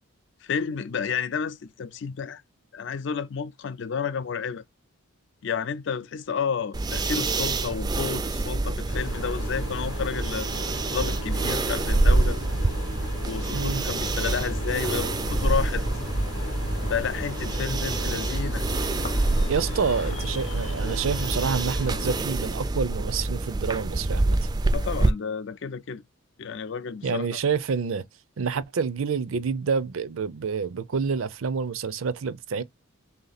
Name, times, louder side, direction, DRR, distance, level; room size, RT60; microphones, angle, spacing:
voice 1, 0.4-2.4 2.7-4.6 5.4-10.5 10.9-12.4 13.2-15.9 16.9-18.6 24.7-26.0 26.4-27.4, left 6 dB, 60° left, 0.4 m, -31 dB
sound 1, 6.7-25.1, right 2 dB, 20° right, 0.3 m, -27 dB
sound 2, 8.9-22.2, left 3 dB, 85° left, 0.7 m, -39 dB
sound 3, 13.6-21.6, left 1 dB, 35° left, 0.7 m, -37 dB
voice 2, 19.5-24.5 27.0-28.0 28.4-32.6, right 5 dB, 75° right, 0.5 m, -28 dB
3.5 x 2.8 x 3.9 m
head